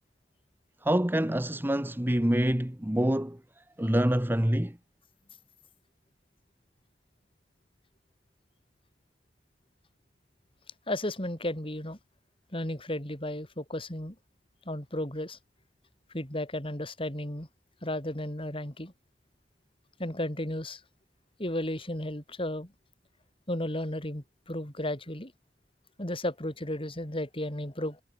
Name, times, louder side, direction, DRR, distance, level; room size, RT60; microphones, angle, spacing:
voice 1, 0.8-3.4 3.8-4.8, right 1 dB, 10° right, 1.1 m, -26 dB
voice 2, 10.9-12.0 12.5-14.1 14.6-15.4 16.1-17.5 17.8-18.9 20.0-20.8 21.4-22.7 23.5-25.3 26.0-28.0, left 1 dB, 30° left, 5.1 m, -34 dB
head